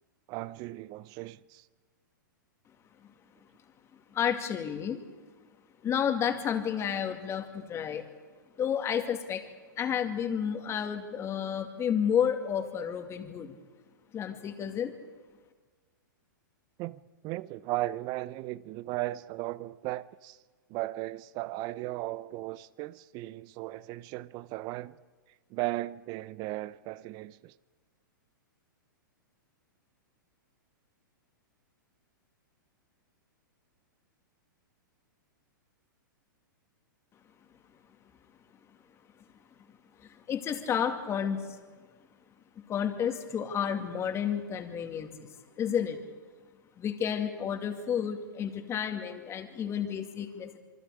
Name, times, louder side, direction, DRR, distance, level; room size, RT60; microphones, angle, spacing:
voice 1, 0.3-1.7 16.8-20.4 20.7-25.0 25.5-27.5, right 17 dB, 40° right, 0.7 m, -36 dB
voice 2, 3.9-5.0 5.8-8.0 8.6-9.5 9.7-13.6 14.1-15.0 40.0-41.6 42.6-46.0 46.8-50.6, left 8 dB, 25° left, 2.5 m, -31 dB
28.0 x 23.5 x 5.0 m
hypercardioid pair, 120°, 11 cm